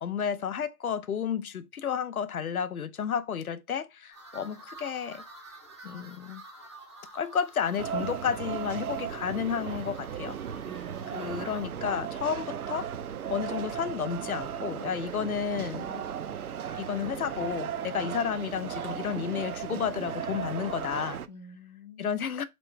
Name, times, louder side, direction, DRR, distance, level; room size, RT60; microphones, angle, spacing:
voice 1, 0.0-5.2 5.8-6.4 7.1-10.4 11.1-12.9 13.3-16.0 16.8-21.2 22.0-22.4, left 7 dB, 70° left, 0.7 m, -32 dB
sound 1, 4.1-11.7, right 3 dB, 20° right, 0.5 m, -50 dB
sound 2, 7.8-21.3, right 8 dB, 70° right, 0.6 m, -36 dB
voice 2, 10.7-11.7 18.1-18.2 21.3-22.2, left 1 dB, 30° left, 0.4 m, -48 dB
4.4 x 3.0 x 3.2 m
figure-of-eight pair, 140°, 45 cm